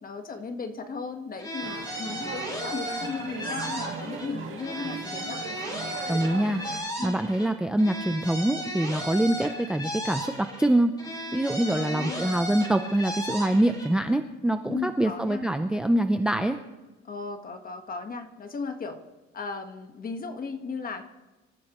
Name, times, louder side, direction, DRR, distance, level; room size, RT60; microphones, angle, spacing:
voice 1, 0.0-5.4 7.0-7.2 11.6-12.4 14.7-15.5 17.0-19.0 19.3-21.0, left 4 dB, 30° left, 6 dB, 1.3 m, -36 dB
sound 1, 1.4-4.3 4.6-7.5 7.8-10.7 11.0-13.9, equal, 15° left, 4.3 m, -35 dB
sound 2, 1.6-6.8, right 6 dB, 45° right, 2.3 m, -38 dB
voice 2, 6.1-10.9 11.3-16.6, right 1 dB, 5° right, 7 dB, 0.4 m, -25 dB
26.5 x 14.0 x 3.0 m, 1.1 s
cardioid pair, 150°, 29 cm